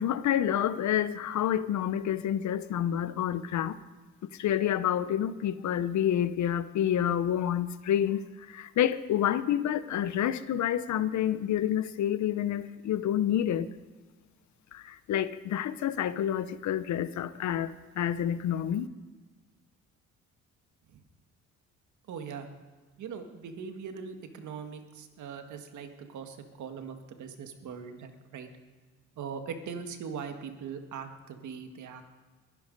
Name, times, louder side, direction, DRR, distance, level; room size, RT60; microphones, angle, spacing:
voice 1, 0.0-3.8 4.3-13.7 14.7-18.9, left 10 dB, 70° left, 0.8 m, -28 dB
voice 2, 22.1-22.5 23.0-28.5 29.2-32.0, right 6 dB, 75° right, 1.8 m, -41 dB
22.0 x 10.5 x 5.4 m
cardioid pair, 90°, 30 cm